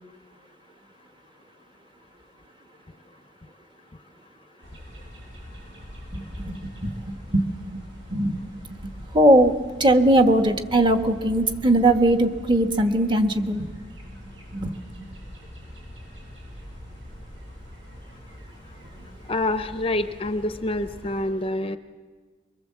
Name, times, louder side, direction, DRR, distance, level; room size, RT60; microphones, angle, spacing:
sound 1, 4.6-21.2, equal, 80° right, 7.7 m, -43 dB
voice 1, 6.1-7.8 8.1-8.4 8.8-9.5 9.8-13.7 14.5-14.8, right 1 dB, 25° right, 7 dB, 1.2 m, -20 dB
voice 2, 19.3-21.8, left 1 dB, 30° left, 11 dB, 0.6 m, -26 dB
24.0 x 22.0 x 7.4 m, 1.5 s
head